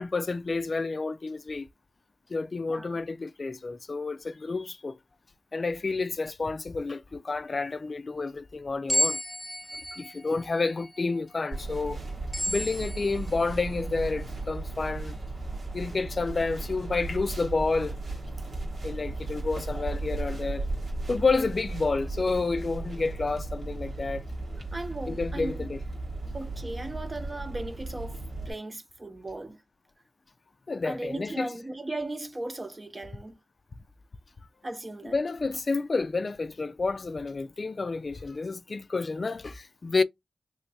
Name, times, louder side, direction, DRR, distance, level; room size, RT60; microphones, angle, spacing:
voice 1, 0.0-1.7 2.3-5.0 5.5-9.2 9.9-12.0 12.5-15.1 15.7-18.0 18.8-20.6 21.1-24.2 25.1-25.8 30.7-31.5 35.1-40.0, left 3 dB, 55° left, 0.4 m, -30 dB
sound 1, 8.9-13.7, left 1 dB, 10° left, 1.1 m, -33 dB
sound 2, 11.5-28.5, right 2 dB, 80° right, 1.2 m, -36 dB
voice 2, 24.7-25.7 26.3-29.6 30.8-33.4 34.6-35.2, right 2 dB, 35° right, 0.8 m, -37 dB
3.3 x 3.1 x 2.6 m
cardioid pair, 45°, 0 cm